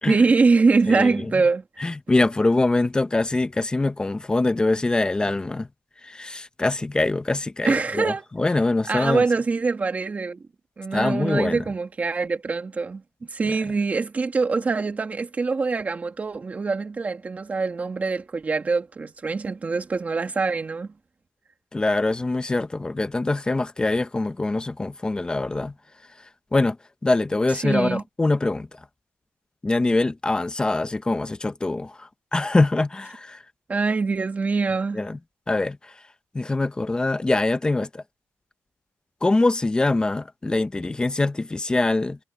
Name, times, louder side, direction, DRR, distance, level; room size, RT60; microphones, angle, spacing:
voice 1, 0.1-1.6 7.6-8.2 8.9-10.4 10.8-13.0 13.3-20.9 27.6-28.0 33.7-35.1, right 4 dB, 25° right, 2.2 m, -23 dB
voice 2, 1.8-5.7 6.0-9.2 10.9-11.6 21.7-25.7 26.5-26.8 27.0-28.7 29.6-33.4 34.9-35.2 35.5-35.9 36.3-38.0 39.2-42.2, left 2 dB, 15° left, 0.8 m, -23 dB
cardioid pair, 150°, 6 cm